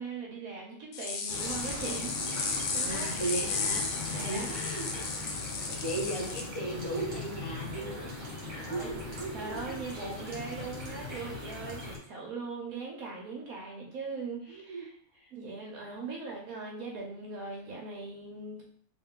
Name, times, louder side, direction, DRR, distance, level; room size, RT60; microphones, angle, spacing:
voice 1, 0.0-3.1 4.1-4.5 8.6-8.9 9.3-14.9 15.3-18.6, right 4 dB, 60° right, -2 dB, 1.2 m, -40 dB
sound 1, 0.9-6.4, left 4 dB, 75° left, 1.2 m, -34 dB
sound 2, 1.3-12.0, left 2 dB, 30° right, 1.0 m, -40 dB
voice 2, 2.8-5.4 5.8-8.1 8.5-9.8 11.1-11.4 14.5-14.9 15.1-15.3, right 2 dB, 45° left, -6 dB, 1.7 m, -37 dB
3.2 x 3.0 x 3.6 m, 0.63 s
omnidirectional pair, 1.8 m